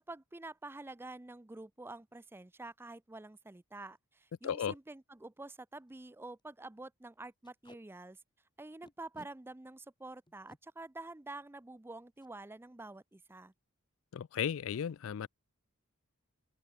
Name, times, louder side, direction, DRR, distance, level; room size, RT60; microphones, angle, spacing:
voice 1, 0.1-8.2 8.6-13.5, right 2 dB, 10° right, 0.5 m, -48 dB
Packing tape duct tape, 3.8-4.0 4.4-4.5 4.7-4.9 5.4-5.5 5.7-5.9 6.2-6.4 7.4-7.8 8.8-9.3 10.3-10.6 12.2-12.3 12.7-12.9 13.1-13.5, left 1 dB, 20° left, 4.2 m, -59 dB
voice 2, 4.4-4.7 14.1-15.3, left 8 dB, 70° left, 0.4 m, -35 dB
head